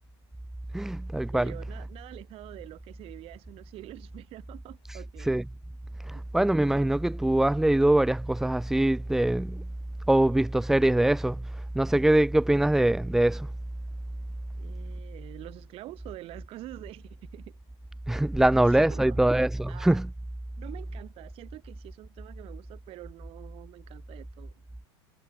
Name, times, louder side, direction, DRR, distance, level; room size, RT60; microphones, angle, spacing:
voice 1, 0.7-1.5 4.9-5.4 6.0-9.6 10.1-11.4 11.7-13.5 18.1-20.1, right 1 dB, 5° right, 0.4 m, -23 dB
voice 2, 1.3-5.3 14.6-17.5 18.4-19.3 19.7-20.0 20.6-24.5, right 17 dB, 40° right, 2.3 m, -46 dB
supercardioid pair, 135°, 15 cm